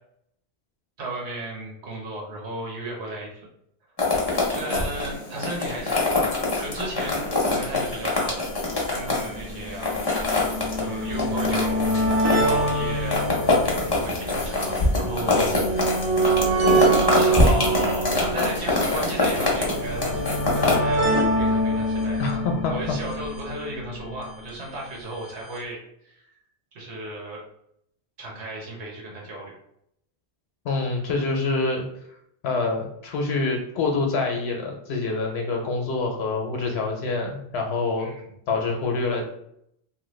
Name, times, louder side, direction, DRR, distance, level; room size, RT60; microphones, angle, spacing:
voice 1, 1.0-3.3 4.5-8.5 8.9-10.0 10.8-11.8 12.3-13.2 13.9-15.6 17.1-21.1 21.4-22.2 22.7-26.3 26.7-27.4 28.2-29.5 38.0-38.2, right 2 dB, 80° right, -2 dB, 1.2 m, -34 dB
sound 1, 4.0-20.7, left 2 dB, 25° left, 0.6 m, -25 dB
sound 2, 7.9-8.0 8.1-8.2 9.1-24.3 25.3-25.4 25.6-25.7, right 1 dB, 45° right, 0.5 m, -26 dB
voice 2, 22.2-22.7 30.6-31.8 32.4-38.1 38.5-39.3, left 3 dB, 75° left, 2 dB, 0.8 m, -26 dB
2.9 x 2.2 x 3.1 m, 0.74 s
omnidirectional pair, 1.1 m